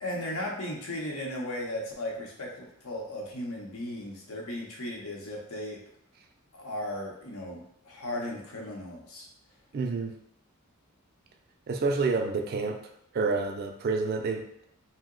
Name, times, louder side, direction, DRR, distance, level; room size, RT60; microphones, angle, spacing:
voice 1, 0.0-5.8 6.5-9.2, left 1 dB, 80° left, -1 dB, 0.8 m, -36 dB
voice 2, 9.7-10.1 11.7-12.8 13.1-14.7, right 4 dB, 45° right, 4 dB, 0.3 m, -28 dB
2.8 x 2.1 x 3.7 m, 0.76 s
head